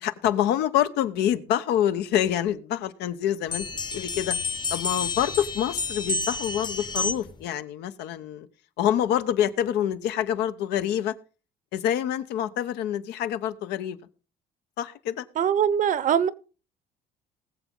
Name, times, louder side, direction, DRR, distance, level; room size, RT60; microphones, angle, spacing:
voice 1, 0.0-3.6 3.9-4.4 4.7-8.5 8.8-11.1 11.7-14.0 14.8-15.2, left 10 dB, 85° left, 1.0 m, -26 dB
sound 1, 3.5-7.4, left 3 dB, 25° left, 0.9 m, -30 dB
voice 2, 15.4-16.3, right 8 dB, 50° right, 0.8 m, -22 dB
20.0 x 7.3 x 3.8 m
cardioid pair, 110°, 17 cm